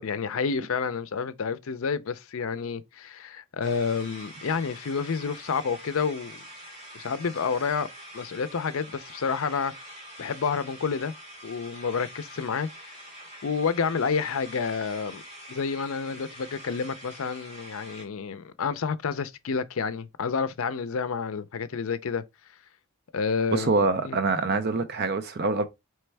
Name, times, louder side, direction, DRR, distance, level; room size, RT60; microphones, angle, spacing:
voice 1, 0.0-6.4 6.9-7.9 8.1-9.7 10.2-11.1 11.4-13.0 13.4-15.2 15.5-22.2 23.1-24.2, left 5 dB, 70° left, 0.5 m, -29 dB
sound 1, 3.6-18.1, equal, 25° right, 2.1 m, -45 dB
voice 2, 23.5-25.7, right 3 dB, 45° right, 0.5 m, -25 dB
4.3 x 3.3 x 3.3 m
head